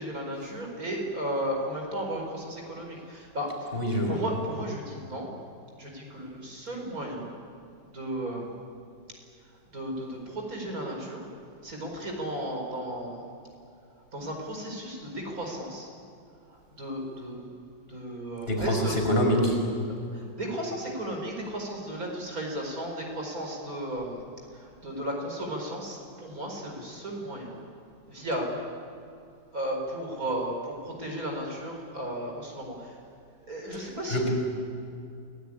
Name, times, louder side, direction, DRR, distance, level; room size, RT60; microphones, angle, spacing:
voice 1, 0.0-3.8 4.1-5.3 5.8-7.4 7.9-8.5 9.5-11.3 11.6-13.3 14.1-15.9 16.5-17.5 17.9-18.9 20.1-24.2 24.5-27.6 28.1-28.6 29.5-33.0 33.5-34.3, right 1 dB, 50° right, 0 dB, 5.3 m, -34 dB
voice 2, 3.7-4.2 18.5-19.6 33.7-34.3, equal, 30° left, 1 dB, 5.7 m, -26 dB
29.0 x 19.5 x 10.0 m, 2.5 s
omnidirectional pair, 2.0 m